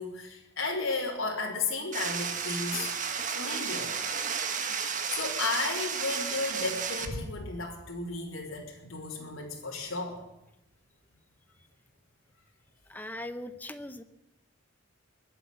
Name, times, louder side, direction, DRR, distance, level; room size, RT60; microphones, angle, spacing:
voice 1, 0.0-2.9 3.3-3.9 5.1-10.2, left 3 dB, 80° left, -3 dB, 3.7 m, -33 dB
sound 1, 1.9-7.1, right 6 dB, 40° right, 1.4 m, -33 dB
voice 2, 12.9-14.0, left 1 dB, 10° left, 10 dB, 0.8 m, -39 dB
21.5 x 8.0 x 8.2 m, 0.89 s
head